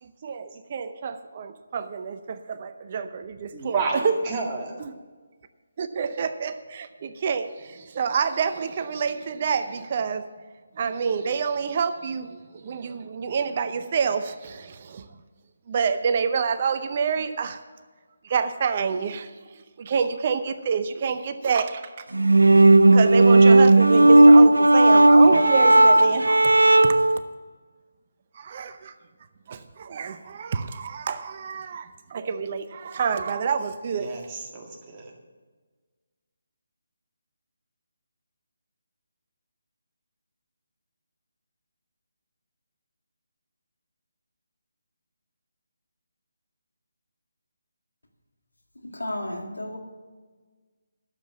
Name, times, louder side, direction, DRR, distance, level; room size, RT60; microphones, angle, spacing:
voice 1, 0.0-4.2 4.8-4.9 5.8-10.3 10.7-15.2 15.7-17.6 18.2-22.1 22.5-26.5 26.8-27.0 28.3-29.0 29.5-34.2, right 6 dB, 40° right, 0.7 m, -28 dB
voice 2, 3.5-4.8 34.0-34.2 34.5-35.1, right 4 dB, 25° right, 2.0 m, -30 dB
sound 1, 22.1-27.2, right 2 dB, 85° right, 0.5 m, -14 dB
voice 3, 48.8-49.8, left 1 dB, 90° left, 2.0 m, -32 dB
11.5 x 7.5 x 6.9 m
figure-of-eight pair, 155°, 0 cm